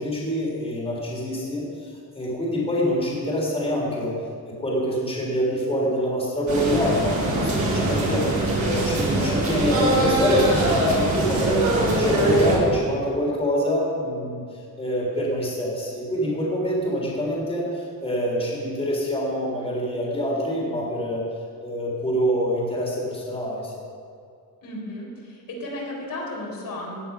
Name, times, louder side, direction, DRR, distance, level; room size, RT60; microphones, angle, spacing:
voice 1, 0.0-4.1 4.5-21.2 21.6-23.8, equal, 15° left, -4 dB, 3.5 m, -26 dB
sound 1, 6.5-12.6, right 1 dB, 50° right, 4.1 m, -22 dB
voice 2, 24.6-27.0, left 1 dB, 60° left, -3 dB, 4.3 m, -34 dB
17.0 x 9.9 x 5.5 m, 2.3 s
wide cardioid pair, 150°, 37 cm